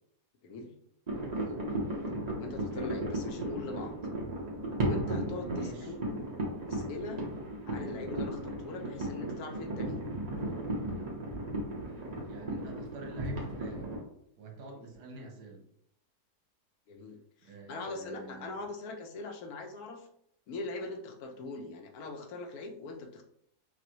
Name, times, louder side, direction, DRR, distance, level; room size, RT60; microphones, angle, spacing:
sound 1, 1.1-14.0, right 1 dB, 30° right, 0.8 m, -35 dB
voice 1, 2.3-3.9 4.8-6.2 6.7-7.2 7.7-10.0 14.7-14.9 16.9-20.1 20.5-23.2, left 3 dB, 70° left, 3 dB, 1.1 m, -41 dB
voice 2, 5.5-5.9 12.3-13.9 14.4-15.7 17.4-18.6, right 2 dB, 85° right, 1 dB, 1.5 m, -47 dB
6.0 x 2.3 x 3.0 m, 0.71 s
omnidirectional pair, 1.7 m